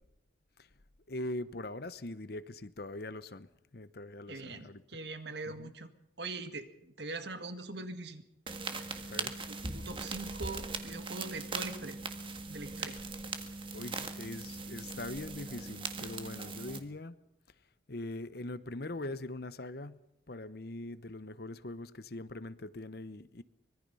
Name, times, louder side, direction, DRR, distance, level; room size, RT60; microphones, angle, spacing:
voice 1, 1.1-4.8 5.5-5.7 9.0-9.4 13.7-17.2 17.9-23.4, left 2 dB, 55° left, 0.9 m, -42 dB
voice 2, 4.3-5.9 6.2-8.3 8.8-9.0 9.5-12.0 12.5-13.0, right 3 dB, 60° right, 1.9 m, -42 dB
sound 1, 8.5-16.8, right 3 dB, 25° right, 1.6 m, -40 dB
24.5 x 21.5 x 5.6 m
head